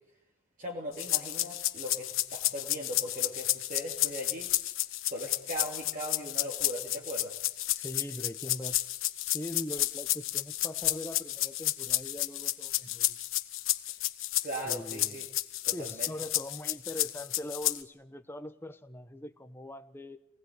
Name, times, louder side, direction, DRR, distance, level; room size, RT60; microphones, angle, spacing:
voice 1, 0.6-4.5 5.0-7.4 14.4-15.3 15.6-16.1, equal, 35° right, -1 dB, 3.2 m, -39 dB
sound 1, 1.0-17.8, left 15 dB, 60° left, 1.3 m, -31 dB
voice 2, 7.8-8.8 9.2-13.2 14.6-15.2 15.7-20.2, left 1 dB, 10° left, 9 dB, 1.2 m, -41 dB
27.5 x 20.0 x 9.6 m, 0.85 s
head